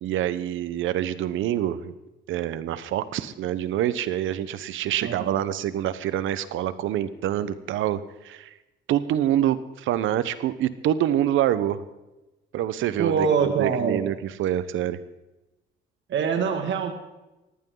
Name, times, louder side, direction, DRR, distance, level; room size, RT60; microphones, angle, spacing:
voice 1, 0.0-1.9 2.3-8.5 8.9-11.8 12.5-15.0, right 11 dB, 85° right, 14 dB, 1.0 m, -26 dB
voice 2, 5.0-5.5 13.0-14.0 16.1-16.9, right 6 dB, 70° right, 5 dB, 2.1 m, -24 dB
19.0 x 15.0 x 3.9 m, 1.0 s
cardioid pair, 90°, 20 cm